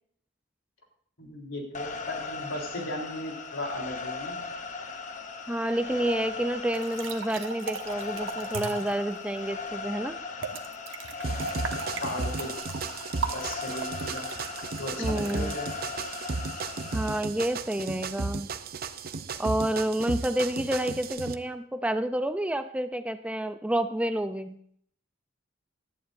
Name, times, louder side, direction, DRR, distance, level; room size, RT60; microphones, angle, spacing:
voice 1, 1.2-4.4 11.3-11.4 12.0-12.5 13.3-14.3 14.8-15.6, left 1 dB, 85° left, 0 dB, 3.6 m, -36 dB
sound 1, 1.7-17.2, left 4 dB, 40° left, 1.0 m, -38 dB
voice 2, 5.5-10.2 15.0-15.5 16.9-18.5 19.4-24.6, right 1 dB, 5° right, 10 dB, 0.4 m, -29 dB
sound 2, 6.7-9.0 10.4-16.5, right 5 dB, 85° right, 1.1 m, -38 dB
sound 3, 11.2-21.3, right 4 dB, 50° right, 0.7 m, -35 dB
17.5 x 11.5 x 2.6 m, 0.64 s
head